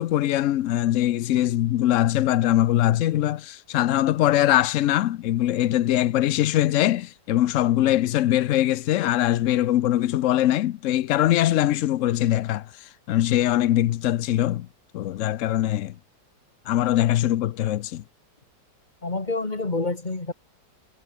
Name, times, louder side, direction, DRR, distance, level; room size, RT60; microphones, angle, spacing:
voice 1, 0.0-14.7 14.9-15.9 16.7-18.0, left 13 dB, 80° left, 0.6 m, -22 dB
voice 2, 19.0-20.3, left 3 dB, 25° left, 2.6 m, -27 dB
omnidirectional pair, 2.0 m